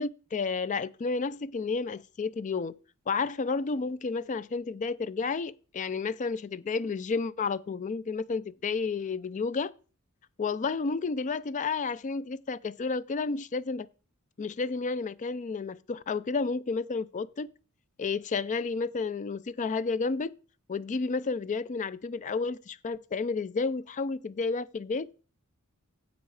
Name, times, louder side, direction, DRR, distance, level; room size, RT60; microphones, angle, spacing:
voice 1, 0.0-2.7 3.1-9.7 10.4-13.9 14.4-17.5 18.0-20.3 20.7-25.1, left 4 dB, 35° left, 0.4 m, -31 dB
10.0 x 8.0 x 4.7 m
head